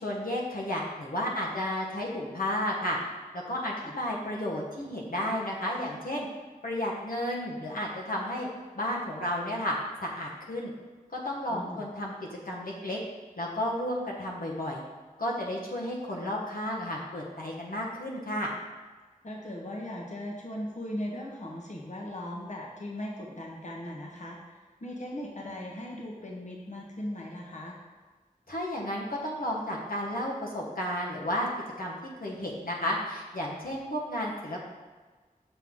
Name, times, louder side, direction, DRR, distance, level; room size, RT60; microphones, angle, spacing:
voice 1, 0.0-3.0 3.3-6.3 6.6-8.5 8.7-10.7 11.2-12.1 12.4-13.0 13.4-14.8 15.2-18.5 28.5-31.5 31.8-31.9 32.2-34.6, left 1 dB, 80° left, -3 dB, 1.1 m, -32 dB
voice 2, 11.5-11.8 19.2-27.8, left 1 dB, 55° left, -2 dB, 1.0 m, -38 dB
6.1 x 5.6 x 3.7 m, 1.4 s
wide cardioid pair, 50°, 15 cm